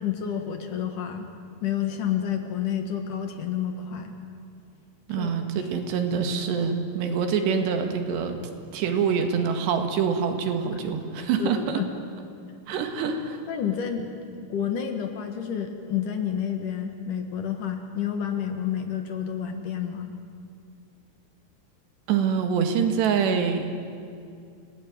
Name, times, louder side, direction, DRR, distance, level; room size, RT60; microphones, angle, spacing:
voice 1, 0.0-1.3 1.6-4.2 5.2-5.3 11.4-11.9 13.5-14.1 14.3-20.2, left 8 dB, 60° left, 5 dB, 2.8 m, -29 dB
voice 2, 5.1-8.4 8.7-11.8 12.7-13.4 22.1-23.7, right 6 dB, 85° right, 6 dB, 4.0 m, -25 dB
28.5 x 18.5 x 9.4 m, 2.4 s
omnidirectional pair, 4.8 m